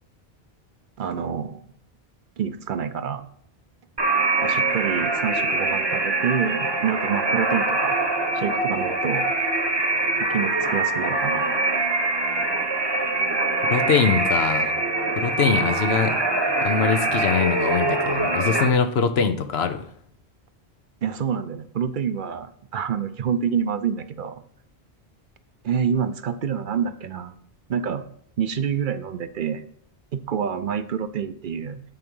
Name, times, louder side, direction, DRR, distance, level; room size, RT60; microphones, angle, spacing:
voice 1, 1.0-1.7 2.4-3.3 4.4-8.0 8.3-9.3 10.3-11.5 21.0-24.4 25.6-27.3 27.7-28.0 28.4-29.6 30.1-31.8, right 7 dB, 60° right, 11 dB, 0.7 m, -27 dB
sound 1, 4.0-18.7, right 2 dB, 25° right, 1.0 m, -23 dB
voice 2, 13.7-14.7 15.1-16.2 16.6-19.8, left 6 dB, 80° left, 9 dB, 1.0 m, -23 dB
9.2 x 4.8 x 5.4 m, 0.65 s
omnidirectional pair, 1.0 m